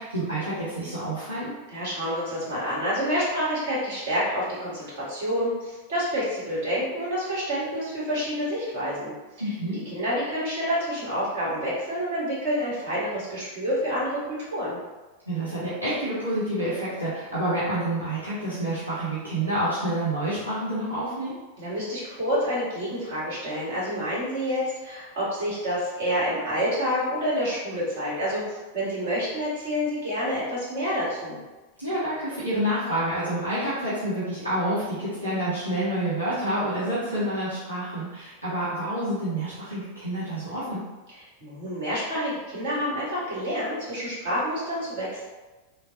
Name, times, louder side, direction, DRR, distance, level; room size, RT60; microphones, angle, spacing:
voice 1, 0.0-1.5 9.4-9.8 15.3-21.3 31.8-40.8, right 1 dB, 85° right, -12 dB, 0.8 m, -28 dB
voice 2, 1.7-9.1 9.9-14.8 21.6-31.4 41.4-45.2, equal, 55° right, -8 dB, 1.3 m, -28 dB
3.2 x 2.0 x 2.6 m, 1.2 s
figure-of-eight pair, 90°, 0 cm